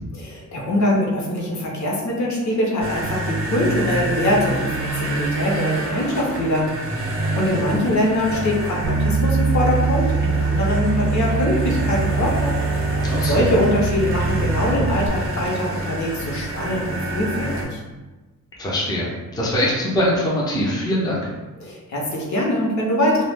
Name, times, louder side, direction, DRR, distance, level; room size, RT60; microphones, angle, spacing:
voice 1, 0.2-7.1 7.3-12.6 13.1-17.8 21.6-23.2, left 1 dB, 55° left, -2 dB, 0.7 m, -23 dB
sound 1, 2.8-17.6, right 1 dB, 40° right, 0.5 m, -27 dB
voice 2, 7.5-7.9 13.0-13.4 18.6-21.3, left 1 dB, 10° left, -5 dB, 0.5 m, -23 dB
Bass guitar, 8.8-15.1, right 4 dB, 90° right, 0.5 m, -23 dB
2.2 x 2.0 x 3.3 m, 1.2 s
wide cardioid pair, 130°, 33 cm